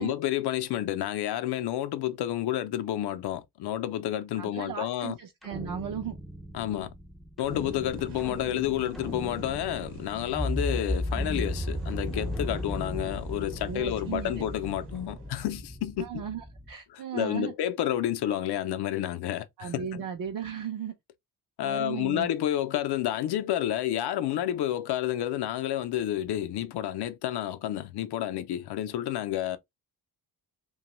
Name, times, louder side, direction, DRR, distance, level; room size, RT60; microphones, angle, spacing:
voice 1, 0.0-5.2 6.5-6.9 7.4-16.2 16.9-20.0 21.6-29.6, left 12 dB, 75° left, 0.5 m, -30 dB
voice 2, 4.4-6.2 13.7-14.4 16.0-17.5 19.6-20.9 21.6-22.3, right 8 dB, 55° right, 0.5 m, -36 dB
sound 1, 5.4-16.7, equal, ahead, 0.3 m, -35 dB
sound 2, 7.4-15.3, right 5 dB, 80° right, 0.9 m, -46 dB
2.9 x 2.3 x 2.9 m
wide cardioid pair, 165°, 40 cm